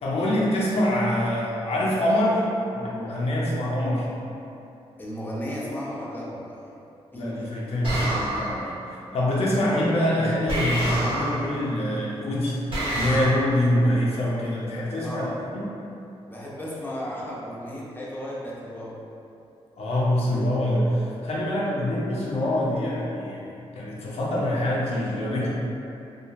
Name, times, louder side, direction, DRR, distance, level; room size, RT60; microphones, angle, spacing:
voice 1, 0.0-2.4 2.7-4.1 7.1-8.7 9.1-15.3 15.5-15.7 19.8-25.5, left 1 dB, 65° left, -5 dB, 0.6 m, -25 dB
voice 2, 5.0-6.6 7.1-7.5 15.0-15.4 16.3-19.0, equal, 20° left, -6 dB, 0.5 m, -34 dB
sound 1, 7.8-8.7 10.5-11.5 12.7-13.3, right 1 dB, 50° right, 0.8 m, -27 dB
2.9 x 2.4 x 2.3 m, 2.7 s
wide cardioid pair, 130°, 11 cm